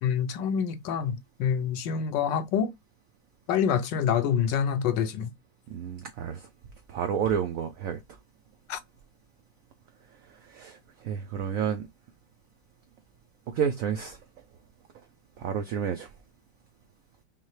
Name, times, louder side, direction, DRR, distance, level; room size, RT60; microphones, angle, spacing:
voice 1, 0.0-2.7 3.5-5.3 8.7-8.8, left 7 dB, 80° left, 1.3 m, -26 dB
voice 2, 5.7-6.5 6.9-8.0 10.3-11.9 13.5-14.2 15.4-16.1, right 8 dB, 85° right, 0.7 m, -30 dB
5.5 x 2.1 x 3.1 m
omnidirectional pair, 2.0 m